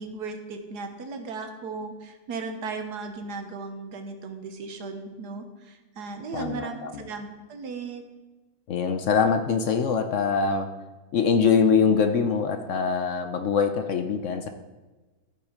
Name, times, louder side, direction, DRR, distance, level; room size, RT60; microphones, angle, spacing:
voice 1, 0.0-8.0, right 4 dB, 85° right, 6 dB, 1.6 m, -36 dB
voice 2, 6.3-7.0 8.7-10.7 11.1-14.5, left 6 dB, 60° left, 7 dB, 0.9 m, -23 dB
13.5 x 5.7 x 5.0 m, 1.2 s
omnidirectional pair, 1.7 m